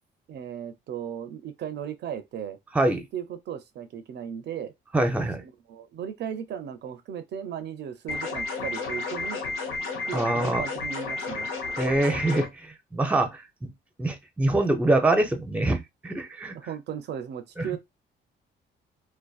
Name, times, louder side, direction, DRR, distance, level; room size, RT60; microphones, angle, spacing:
voice 1, 0.3-2.6 3.1-4.7 5.4-9.4 10.1-11.5 16.5-17.8, right 8 dB, 60° right, 0.4 m, -36 dB
voice 2, 2.7-3.1 4.9-5.4 10.1-10.6 11.8-13.4 14.0-16.6 17.6-17.7, right 2 dB, 5° right, 0.5 m, -24 dB
sound 1, 8.1-12.5, left 3 dB, 90° left, 0.6 m, -32 dB
2.5 x 2.2 x 2.3 m
cardioid pair, 90°, 20 cm